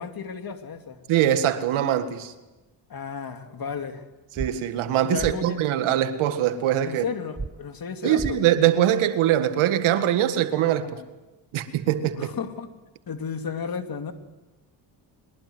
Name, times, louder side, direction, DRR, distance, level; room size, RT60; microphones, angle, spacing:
voice 1, 0.0-1.0 2.9-4.0 5.0-5.6 6.8-8.4 10.8-11.1 12.1-12.7 13.1-14.1, left 6 dB, 45° left, 6 dB, 2.7 m, -33 dB
voice 2, 1.1-2.3 4.4-7.1 8.0-10.9 11.5-12.3, right 11 dB, 75° right, 10 dB, 1.9 m, -22 dB
sound 1, 4.4-4.5 5.2-5.3 7.4-7.5 8.2-8.3, right 3 dB, 10° right, 0.7 m, -31 dB
22.5 x 21.5 x 7.9 m, 1.1 s
supercardioid pair, 70°, 49 cm